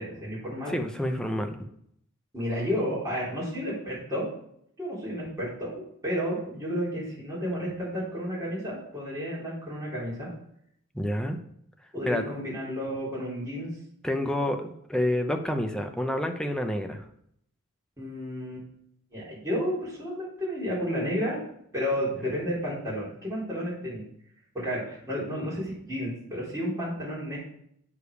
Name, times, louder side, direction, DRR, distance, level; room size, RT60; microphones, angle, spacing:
voice 1, 0.0-0.7 2.3-4.3 4.8-10.3 11.9-13.7 18.0-18.6 19.1-21.4 21.7-24.0 24.5-27.4, equal, 15° right, -8 dB, 3.7 m, -32 dB
voice 2, 0.7-1.6 10.9-11.4 12.0-12.3 14.0-17.1, left 1 dB, 5° left, 4 dB, 0.6 m, -28 dB
8.2 x 5.0 x 4.9 m, 0.70 s
head